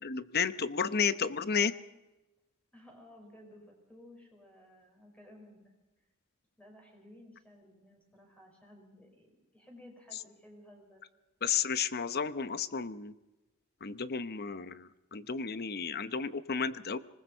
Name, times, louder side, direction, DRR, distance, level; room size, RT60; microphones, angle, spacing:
voice 1, 0.0-1.7 11.4-13.1 13.8-17.0, left 6 dB, 45° left, 14 dB, 0.9 m, -32 dB
voice 2, 2.7-5.6 6.6-11.0, left 1 dB, 5° left, 1 dB, 5.5 m, -56 dB
26.0 x 20.0 x 5.6 m, 1.1 s
head